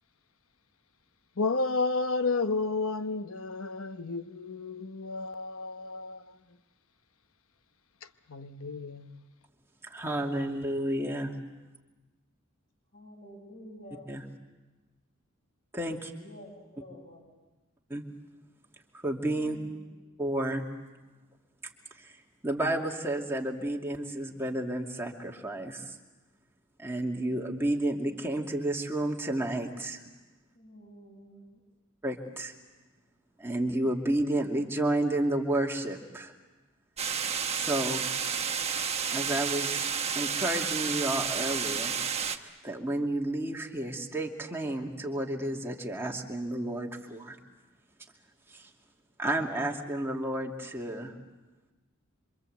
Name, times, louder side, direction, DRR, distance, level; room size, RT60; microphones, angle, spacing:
voice 1, 1.4-6.4 8.3-9.3, left 3 dB, 80° left, 1.0 m, -32 dB
voice 2, 9.9-11.3 14.1-14.2 15.7-16.1 17.9-18.0 19.0-19.6 20.2-20.6 22.0-22.1 22.4-25.9 26.8-30.0 32.0-32.5 33.4-36.3 37.5-38.1 39.1-39.9 40.2-41.9 42.6-47.4 48.5-48.6 49.2-51.1, right 1 dB, 10° right, 2.6 m, -31 dB
voice 3, 12.9-14.1 16.1-17.3 19.3-19.9 30.5-31.6, equal, 50° left, 7.8 m, -49 dB
sound 1, 37.0-42.4, right 7 dB, 30° right, 1.3 m, -31 dB
27.0 x 25.5 x 8.0 m
head